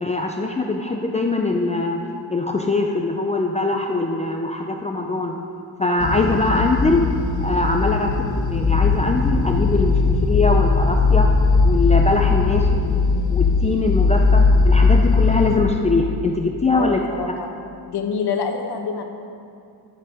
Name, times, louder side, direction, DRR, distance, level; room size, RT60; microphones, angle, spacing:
voice 1, 0.0-2.0 2.3-5.4 5.8-7.0 7.4-8.1 8.5-11.3 11.6-12.7 13.3-17.0, left 2 dB, 15° left, 1 dB, 0.5 m, -22 dB
sound 1, 6.0-15.6, left 4 dB, 45° left, 0.8 m, -18 dB
voice 2, 16.7-17.5 17.9-19.0, left 6 dB, 65° left, 3 dB, 1.5 m, -26 dB
18.5 x 7.0 x 4.9 m, 2.4 s
cardioid pair, 145°, 43 cm